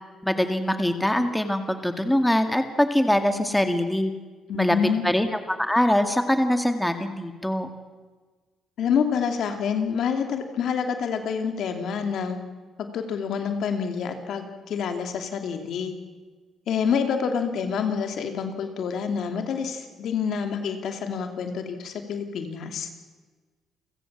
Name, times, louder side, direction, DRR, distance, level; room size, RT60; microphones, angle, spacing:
voice 1, 0.2-4.1 4.5-4.8 5.0-7.7, left 1 dB, 5° left, 7 dB, 2.1 m, -23 dB
voice 2, 4.5-5.0 8.8-12.4 12.8-15.9 16.7-22.9, left 6 dB, 70° left, 6 dB, 2.8 m, -27 dB
29.5 x 16.0 x 7.4 m, 1.4 s
cardioid pair, 90°, 0 cm